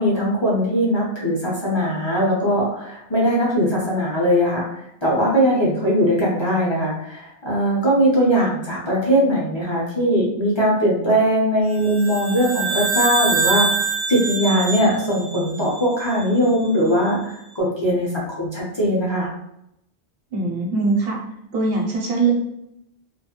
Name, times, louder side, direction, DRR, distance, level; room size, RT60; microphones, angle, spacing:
voice 1, 0.0-13.7 14.1-19.3, equal, 35° left, -6 dB, 0.5 m, -20 dB
sound 1, 11.8-16.3, right 4 dB, 40° right, 0.3 m, -25 dB
voice 2, 20.3-21.2 21.5-22.3, right 3 dB, 70° right, -2 dB, 0.9 m, -21 dB
2.2 x 2.0 x 2.8 m, 0.80 s
omnidirectional pair, 1.0 m